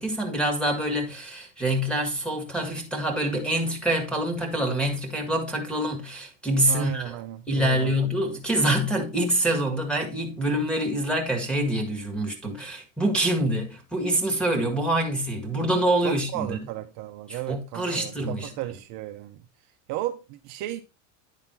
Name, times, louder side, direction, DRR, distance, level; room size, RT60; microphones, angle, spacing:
voice 1, 0.0-7.1 7.5-16.6 17.3-18.5, right 1 dB, ahead, 1.8 m, -26 dB
voice 2, 6.7-7.9 16.0-19.4 19.9-20.8, right 14 dB, 50° right, 0.8 m, -34 dB
9.9 x 4.0 x 4.4 m
supercardioid pair, 140°, 39 cm